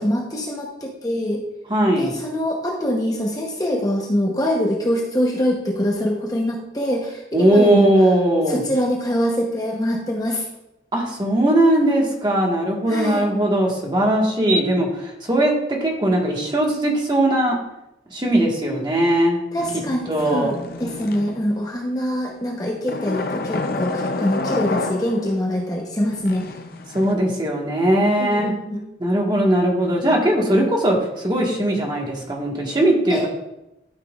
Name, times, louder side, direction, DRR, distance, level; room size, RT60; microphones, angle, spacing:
voice 1, 0.0-1.4 2.0-7.9 8.5-10.5 12.9-13.3 18.3-18.8 19.5-26.5 28.2-28.8 33.1-33.2, equal, 20° left, -1 dB, 0.9 m, -24 dB
voice 2, 1.7-2.1 7.3-8.6 10.9-17.6 18.1-19.4 20.1-20.5 26.9-28.5 29.0-33.3, right 1 dB, 25° right, -2 dB, 1.5 m, -19 dB
sound 1, 19.6-21.6 22.9-25.5 26.0-27.1, left 2 dB, 50° left, 0.6 m, -29 dB
12.5 x 5.9 x 2.4 m, 0.89 s
head